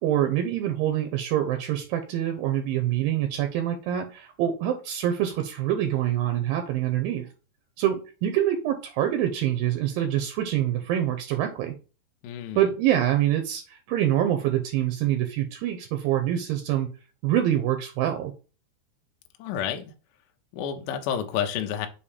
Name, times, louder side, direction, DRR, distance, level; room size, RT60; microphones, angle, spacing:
voice 1, 0.0-7.3 7.8-11.7 12.6-16.9 17.2-18.3, right 11 dB, 85° right, 6 dB, 2.1 m, -25 dB
voice 2, 12.2-12.6 19.4-19.8 20.5-21.9, left 9 dB, 80° left, 6 dB, 1.9 m, -29 dB
6.9 x 2.8 x 5.0 m, 0.34 s
omnidirectional pair, 4.8 m